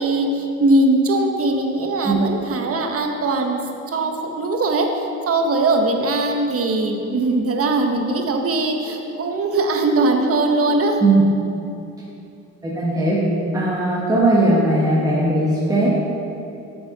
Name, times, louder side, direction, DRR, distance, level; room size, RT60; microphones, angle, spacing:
voice 1, 0.0-3.6 3.9-11.0, right 2 dB, 50° right, 3 dB, 1.0 m, -20 dB
voice 2, 12.6-13.2 13.5-15.9, right 2 dB, 10° right, -7 dB, 1.5 m, -18 dB
8.0 x 7.0 x 3.9 m, 2.7 s
cardioid pair, 90°, 30 cm